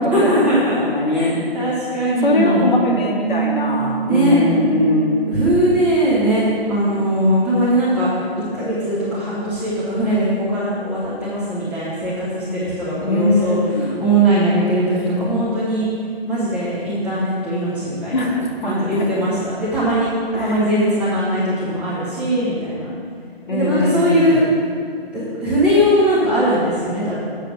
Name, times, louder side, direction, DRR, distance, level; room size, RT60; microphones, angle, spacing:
voice 1, 0.1-0.8 1.1-2.7 4.1-4.4 5.3-8.3 8.5-15.9 16.3-18.3 18.6-22.9 23.5-24.4 25.1-27.2, right 1 dB, 5° right, -12 dB, 0.8 m, -20 dB
voice 2, 0.7-1.4 2.2-5.2 13.0-14.1 18.1-19.2 20.3-20.6 23.5-24.4, left 1 dB, 50° left, -2 dB, 2.1 m, -20 dB
Bass guitar, 3.2-9.5, right 7 dB, 35° right, 0.4 m, -29 dB
8.1 x 6.6 x 6.2 m, 2.3 s
figure-of-eight pair, 150°, 31 cm